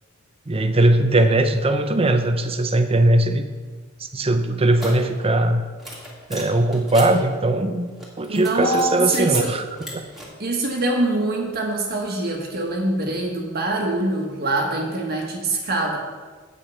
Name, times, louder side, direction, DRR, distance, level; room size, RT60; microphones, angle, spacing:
voice 1, 0.5-3.4 4.0-5.6 6.3-7.9 8.2-9.6 9.9-10.0, right 1 dB, 30° right, 8 dB, 0.7 m, -19 dB
sound 1, 4.8-5.1 5.8-7.1 7.9-9.4 9.7-10.2, equal, ahead, 2.5 m, -36 dB
voice 2, 8.3-9.5 10.4-16.0, right 2 dB, 50° right, 0 dB, 1.4 m, -24 dB
8.8 x 8.4 x 5.4 m, 1.4 s
head